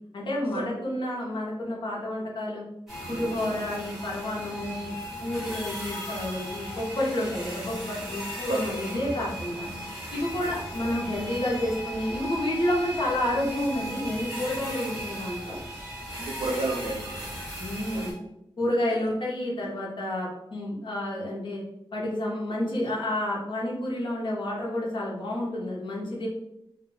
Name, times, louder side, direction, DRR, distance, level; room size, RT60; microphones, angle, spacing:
voice 1, 0.1-2.6 3.1-4.9 5.2-9.7 10.1-15.6 17.6-18.1 18.6-21.6 21.9-26.3, left 1 dB, 60° left, -4 dB, 0.7 m, -30 dB
sound 1, 2.9-18.1, equal, 5° right, 1.0 m, -37 dB
voice 2, 8.5-9.0 16.2-17.3 17.9-18.1, right 2 dB, 80° right, 1 dB, 0.4 m, -31 dB
2.3 x 2.2 x 3.1 m, 0.86 s
wide cardioid pair, 150°, 9 cm